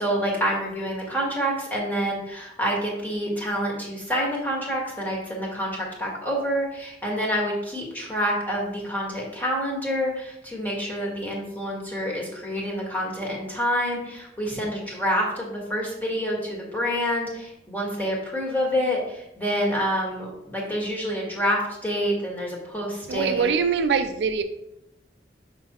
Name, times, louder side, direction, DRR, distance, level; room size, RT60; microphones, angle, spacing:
voice 1, 0.0-23.5, equal, 10° left, -3 dB, 1.5 m, -27 dB
voice 2, 23.1-24.4, right 5 dB, 75° right, 8 dB, 0.4 m, -23 dB
5.9 x 5.5 x 2.9 m, 0.82 s
head